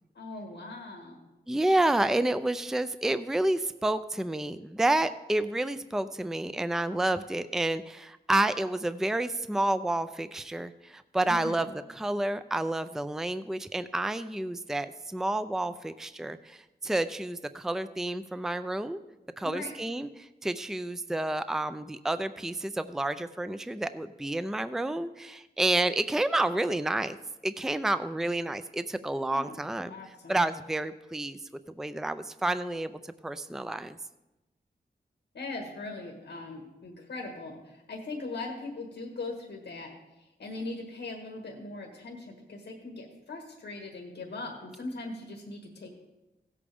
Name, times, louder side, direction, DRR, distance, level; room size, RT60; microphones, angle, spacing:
voice 1, 0.1-1.2 11.2-11.6 19.4-19.7 29.3-29.6 29.9-30.4 35.3-39.9 40.2-45.9, left 2 dB, 90° left, 1 dB, 1.7 m, -40 dB
voice 2, 1.5-19.0 19.4-27.2 27.4-29.9 30.3-31.4 31.8-34.0, right 1 dB, ahead, 12 dB, 0.5 m, -29 dB
16.0 x 8.4 x 3.6 m, 1.0 s
cardioid pair, 55°, 18 cm